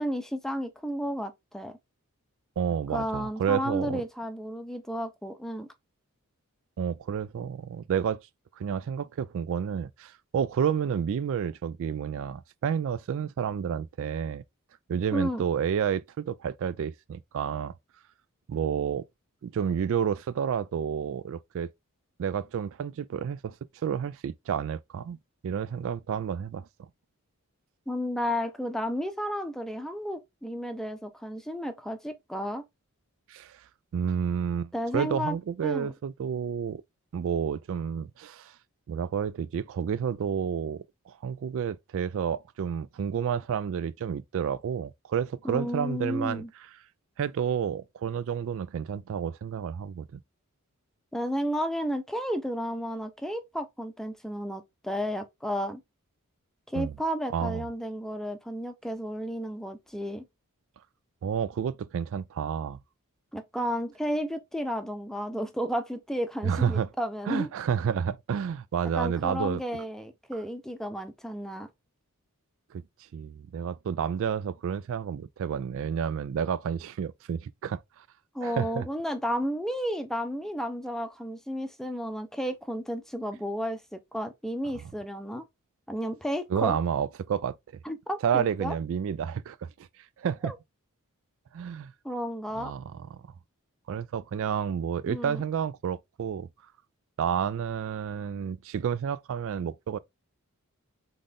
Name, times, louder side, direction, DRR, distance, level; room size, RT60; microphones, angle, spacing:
voice 1, 0.0-1.8 2.9-5.7 15.1-15.4 27.9-32.6 34.7-35.4 35.6-35.9 45.4-46.5 51.1-55.8 56.7-60.2 63.3-67.5 68.9-71.7 78.3-85.4 85.9-86.8 87.8-88.8 90.4-90.5 92.0-92.7 95.1-95.4, equal, ahead, 0.6 m, -32 dB
voice 2, 2.6-4.0 6.8-8.2 8.6-14.4 14.9-17.8 18.5-19.1 19.4-21.7 22.2-23.6 23.8-25.2 25.4-26.7 33.3-33.6 33.9-36.8 37.1-38.6 38.9-46.4 47.2-50.2 56.7-56.9 57.3-57.7 61.2-62.8 66.4-66.9 67.3-69.6 72.7-72.8 73.1-78.0 78.4-78.9 86.5-87.6 88.2-90.5 91.5-91.9 92.6-93.2 93.9-96.5 97.2-100.0, right 7 dB, 60° right, 0.3 m, -30 dB
4.0 x 3.7 x 3.5 m
head